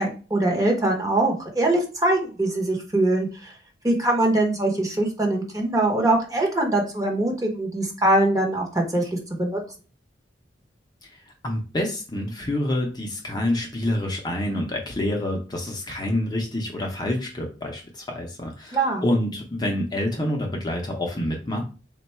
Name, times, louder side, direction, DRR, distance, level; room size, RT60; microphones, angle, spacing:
voice 1, 0.0-3.5 3.8-9.1 9.4-9.6 18.7-19.0, right 2 dB, 20° right, 1 dB, 0.8 m, -22 dB
voice 2, 11.0-21.6, left 1 dB, 25° left, 1 dB, 0.6 m, -27 dB
3.6 x 2.2 x 4.2 m, 0.35 s
head